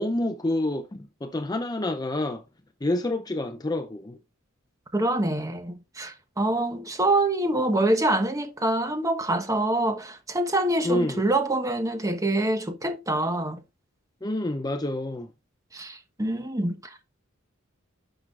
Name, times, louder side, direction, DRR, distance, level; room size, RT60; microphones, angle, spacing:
voice 1, 0.0-2.4 2.8-4.2 10.8-11.2 14.2-15.3, left 1 dB, 20° left, 0.5 m, -28 dB
voice 2, 4.9-13.6 15.7-17.0, right 1 dB, 15° right, 1.2 m, -25 dB
11.5 x 6.0 x 2.4 m
head